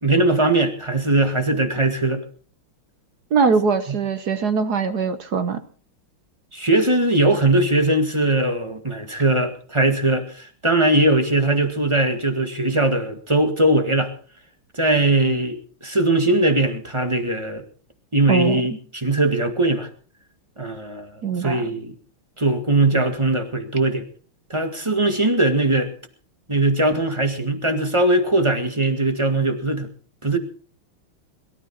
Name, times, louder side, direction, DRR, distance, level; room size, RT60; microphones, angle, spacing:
voice 1, 0.0-2.2 3.9-4.0 6.5-14.1 14.7-17.6 18.1-19.9 20.6-21.1 21.4-22.0 22.4-24.1 24.5-25.9 26.5-29.9 30.2-30.4, right 2 dB, 15° right, 6 dB, 1.7 m, -20 dB
voice 2, 3.3-5.6 18.3-18.7 21.2-21.7, right 5 dB, 55° right, 10 dB, 1.4 m, -21 dB
22.0 x 13.5 x 4.2 m, 0.40 s
omnidirectional pair, 2.3 m